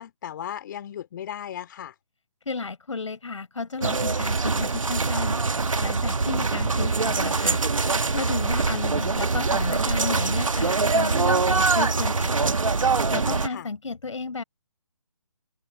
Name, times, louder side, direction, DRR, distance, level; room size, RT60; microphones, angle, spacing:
voice 1, 0.0-1.9 13.5-13.7, left 10 dB, 35° left, 3.2 m, -36 dB
voice 2, 2.4-5.4 5.8-7.6 8.1-12.5 13.1-14.4, left 4 dB, 70° left, 4.9 m, -33 dB
sound 1, 3.8-13.5, right 4 dB, 80° right, 1.7 m, -23 dB
figure-of-eight pair, 150°, 17 cm